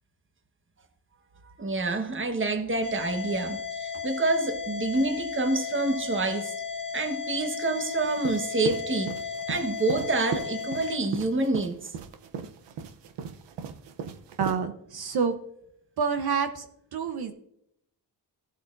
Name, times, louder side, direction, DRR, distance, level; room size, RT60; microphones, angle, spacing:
voice 1, 1.4-6.5 6.9-9.1 9.5-11.9, right 2 dB, 30° right, 6 dB, 1.2 m, -27 dB
sound 1, 2.8-11.0, left 6 dB, 35° left, 1.9 m, -35 dB
sound 2, 8.1-14.6, right 6 dB, 85° right, 0.8 m, -36 dB
voice 2, 14.4-15.4 16.0-16.6 16.9-17.3, right 6 dB, 65° right, 7 dB, 1.0 m, -27 dB
15.0 x 7.8 x 2.6 m, 0.73 s
cardioid pair, 90°, 42 cm